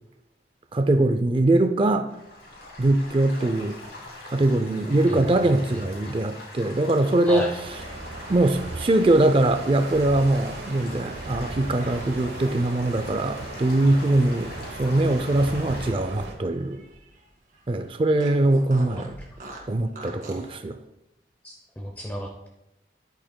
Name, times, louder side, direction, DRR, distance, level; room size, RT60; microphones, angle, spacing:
voice 1, 0.7-2.1 2.8-3.8 4.3-7.5 8.3-14.5 14.8-16.8 17.7-19.2 19.7-20.8, right 2 dB, 30° right, 8 dB, 0.4 m, -22 dB
Stream / Gurgling / Trickle dribble, 2.1-15.9, left 2 dB, 70° left, 2.8 m, -42 dB
voice 2, 5.7-6.1 7.3-7.5 21.4-22.5, equal, 10° left, 0 dB, 0.7 m, -34 dB
sound 1, 7.6-16.3, right 2 dB, 70° right, 1.1 m, -37 dB
Fart, 15.4-17.2 17.5-17.6 18.2-20.5, right 1 dB, 50° right, 2.0 m, -43 dB
10.5 x 8.6 x 2.2 m, 0.89 s
head